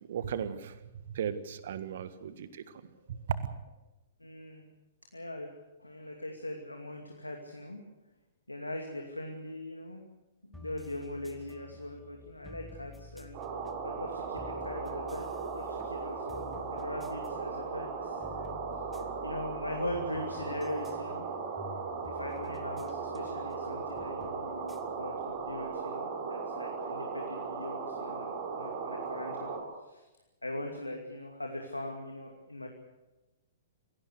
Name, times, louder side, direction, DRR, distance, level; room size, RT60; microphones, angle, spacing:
voice 1, 0.1-0.7 1.1-2.6 3.1-3.4, right 8 dB, 55° right, 12 dB, 1.6 m, -35 dB
voice 2, 4.2-4.6 5.1-5.5 5.8-7.8 8.5-10.0 10.5-13.4 13.8-18.6 19.2-29.5 29.8-30.1 30.4-32.7, left 1 dB, 85° left, 3 dB, 2.5 m, -41 dB
sound 1, 10.5-25.8, left 2 dB, 5° left, 1.5 m, -51 dB
sound 2, 13.3-29.6, right 5 dB, 35° right, 5.9 m, -37 dB
27.0 x 17.5 x 6.7 m, 1.0 s
figure-of-eight pair, 110°, 0 cm